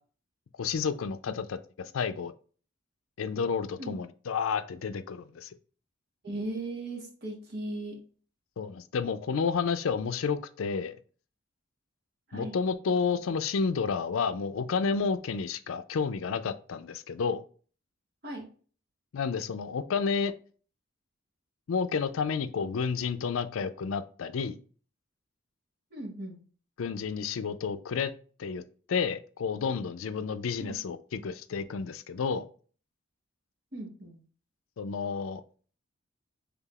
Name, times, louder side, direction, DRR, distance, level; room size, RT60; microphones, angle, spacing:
voice 1, 0.6-1.6 1.9-2.3 3.2-5.5 8.6-11.0 12.3-17.4 19.1-20.3 21.7-24.6 26.8-28.1 28.4-28.6 28.9-32.4 34.8-35.4, left 5 dB, 80° left, 11 dB, 0.4 m, -30 dB
voice 2, 6.2-8.0 12.3-12.6 18.2-18.4 25.9-26.4 30.6-30.7 33.7-34.2, right 2 dB, 50° right, 1 dB, 1.3 m, -37 dB
5.7 x 3.5 x 2.3 m, 0.41 s
head